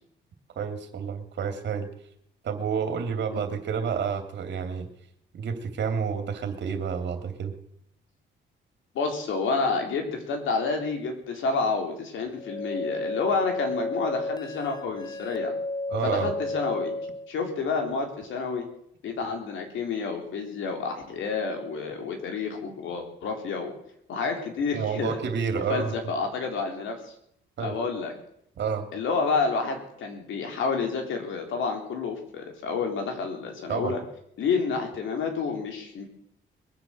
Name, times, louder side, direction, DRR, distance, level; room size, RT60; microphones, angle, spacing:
voice 1, 0.5-1.9 2.4-4.9 5.3-7.5 15.9-16.3 24.7-25.9 27.6-27.8 28.6-28.8 33.7-33.9, right 6 dB, 60° right, 7 dB, 2.9 m, -29 dB
voice 2, 8.9-15.5 16.0-16.9 17.3-18.7 19.0-23.7 24.1-25.2 25.7-27.1 27.6-28.1 28.9-34.0 34.4-36.0, left 4 dB, 75° left, 4 dB, 3.8 m, -29 dB
sound 1, 12.4-17.3, left 2 dB, 20° left, 0.8 m, -32 dB
21.5 x 8.3 x 7.6 m, 0.73 s
cardioid pair, 90°, 20 cm